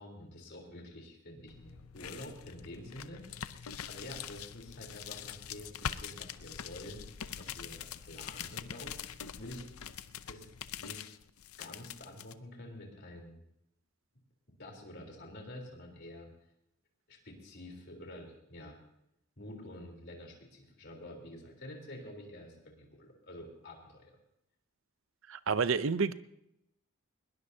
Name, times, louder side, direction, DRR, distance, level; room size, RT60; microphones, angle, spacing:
voice 1, 0.0-3.6 3.9-9.7 10.3-10.5 10.8-11.1 11.6-13.4 14.6-16.3 17.1-18.8 19.4-24.2, left 1 dB, 50° left, 1 dB, 3.7 m, -48 dB
sound 1, 1.5-12.3, left 8 dB, 90° left, 0.6 m, -44 dB
voice 2, 25.3-26.1, right 5 dB, 65° right, 14 dB, 0.6 m, -29 dB
21.0 x 20.0 x 2.8 m, 0.81 s
head